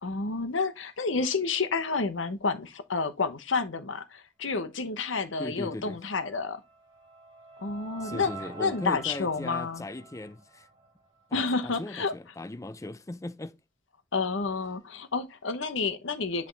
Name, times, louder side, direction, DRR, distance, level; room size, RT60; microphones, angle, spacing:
voice 1, 0.0-6.6 7.6-9.8 11.3-12.1 14.1-16.5, left 4 dB, 70° left, 0.9 m, -30 dB
voice 2, 5.4-6.0 8.0-10.7 11.3-13.6, left 2 dB, 15° left, 0.4 m, -38 dB
sound 1, 6.2-11.4, right 3 dB, 25° right, 2.9 m, -47 dB
8.2 x 3.5 x 3.9 m
head